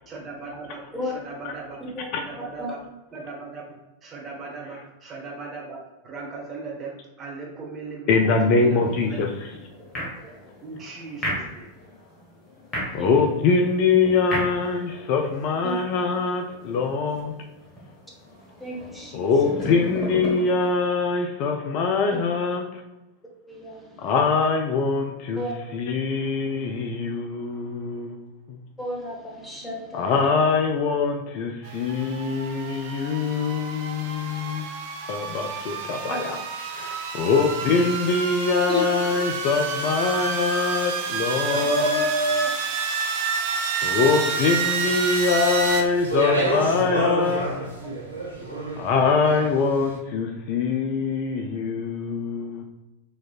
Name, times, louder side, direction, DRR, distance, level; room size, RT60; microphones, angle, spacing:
voice 1, 0.1-1.8 2.2-2.8 3.1-3.7 4.0-8.8 9.1-9.3 10.6-11.7, right 3 dB, 25° right, -2 dB, 1.1 m, -38 dB
voice 2, 8.1-9.5 12.9-17.3 19.1-22.6 24.0-25.4 25.7-28.2 29.9-34.7 35.1-36.4 36.7-41.9 43.8-47.5 48.8-52.6, left 4 dB, 45° left, 3 dB, 0.4 m, -23 dB
sound 1, 8.8-20.7, equal, 20° left, 1.3 m, -36 dB
voice 3, 18.6-19.3 23.5-24.1 25.3-25.5 28.8-30.1 38.7-38.8 41.5-42.5, equal, 5° left, -3 dB, 1.0 m, -29 dB
sound 2, 31.6-45.8, right 5 dB, 50° right, 0.5 m, -29 dB
Speech, 45.4-49.7, right 1 dB, 90° left, 0.9 m, -28 dB
4.1 x 3.0 x 2.4 m, 1.0 s
figure-of-eight pair, 90°, 0 cm